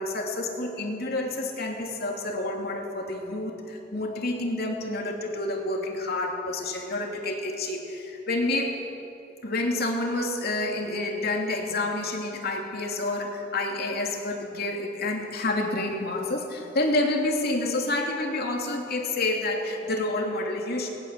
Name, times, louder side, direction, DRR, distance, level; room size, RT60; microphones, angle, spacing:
voice 1, 0.0-8.8 9.4-20.9, left 2 dB, 55° left, 1 dB, 2.9 m, -29 dB
20.0 x 19.5 x 7.5 m, 2.9 s
head